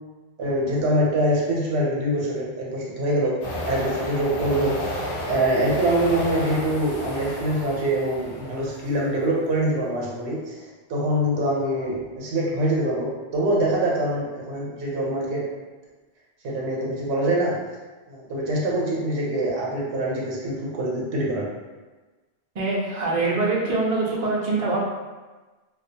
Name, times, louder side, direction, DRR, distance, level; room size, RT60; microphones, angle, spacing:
voice 1, 0.4-3.3 3.7-4.8 5.3-15.4 16.4-17.5 18.1-21.5, right 1 dB, 80° right, -4 dB, 0.9 m, -24 dB
sound 1, 3.4-9.2, equal, 60° left, 0.7 m, -32 dB
voice 2, 22.5-24.8, right 3 dB, 55° right, -4 dB, 0.5 m, -24 dB
2.4 x 2.2 x 2.6 m, 1.2 s
omnidirectional pair, 1.1 m